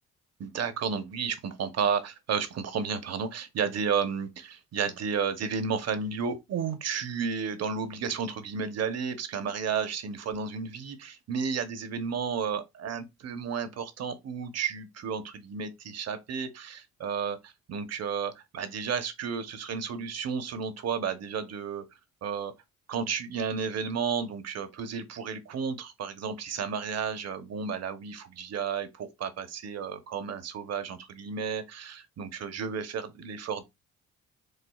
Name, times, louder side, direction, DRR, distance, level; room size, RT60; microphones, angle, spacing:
voice 1, 0.4-21.8 22.2-22.5 22.9-33.6, right 6 dB, 55° right, 0.9 m, -32 dB
6.5 x 2.3 x 2.3 m
cardioid pair, 90°, 30 cm